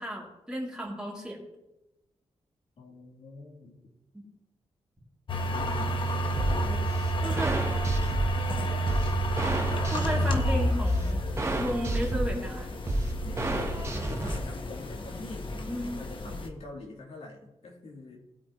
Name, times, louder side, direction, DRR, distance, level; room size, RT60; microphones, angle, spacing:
voice 1, 0.0-1.4 4.1-4.2 7.2-7.6 9.9-11.2 11.6-12.7 15.5-15.9, equal, 5° right, -4 dB, 3.1 m, -33 dB
voice 2, 2.8-3.9 6.4-6.9 7.2-7.5 8.5-9.1 9.5-10.0 13.2-15.6 16.0-18.2, left 2 dB, 80° left, -3 dB, 3.5 m, -44 dB
sound 1, 5.3-16.5, equal, 50° left, 1.2 m, -31 dB
sound 2, 6.4-14.4, right 1 dB, 25° right, 1.3 m, -31 dB
19.5 x 8.6 x 3.2 m, 0.96 s
wide cardioid pair, 170°, 11 cm